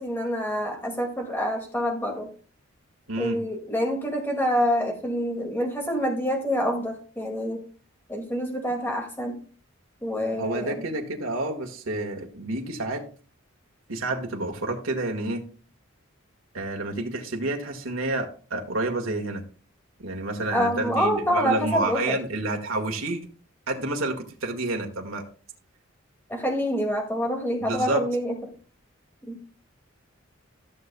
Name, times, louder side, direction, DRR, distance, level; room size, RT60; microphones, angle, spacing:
voice 1, 0.0-2.3 3.2-7.6 8.1-9.4 10.0-10.8 20.5-22.2 26.3-28.4 29.3-29.4, equal, 10° left, 1 dB, 2.0 m, -27 dB
voice 2, 10.4-13.1 13.9-15.4 16.5-19.4 20.0-23.2 23.7-25.2 27.6-28.0, right 2 dB, 85° right, 2 dB, 1.6 m, -29 dB
15.0 x 6.8 x 2.2 m, 0.39 s
head